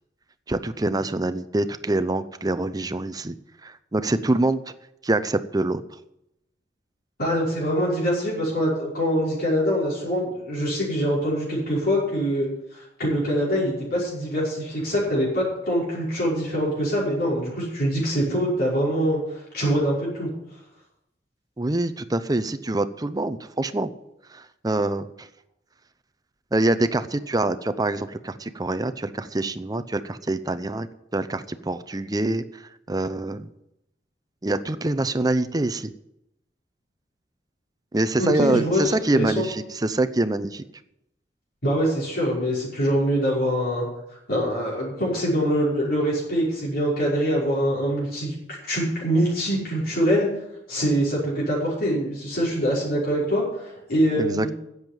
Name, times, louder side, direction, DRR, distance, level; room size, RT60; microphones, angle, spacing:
voice 1, 0.5-3.3 3.6-4.6 5.0-5.8 21.6-23.9 24.3-25.3 26.5-30.9 31.1-32.6 32.9-33.5 34.4-35.9 37.9-40.6 54.2-54.5, right 2 dB, 20° right, 11 dB, 0.6 m, -25 dB
voice 2, 7.2-20.3 38.2-39.4 41.6-43.9 44.3-48.3 48.7-50.3 50.7-54.5, equal, 60° left, -6 dB, 5.7 m, -24 dB
10.5 x 8.1 x 9.0 m, 0.85 s
head